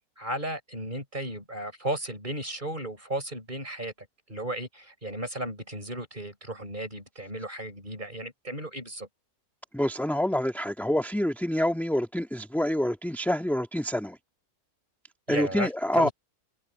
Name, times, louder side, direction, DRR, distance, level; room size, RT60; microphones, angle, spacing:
voice 1, 0.2-3.9 4.3-9.1 15.3-16.1, right 1 dB, 30° right, 6.4 m, -35 dB
voice 2, 9.7-14.2 15.3-16.1, left 1 dB, ahead, 1.5 m, -27 dB
omnidirectional pair, 1.6 m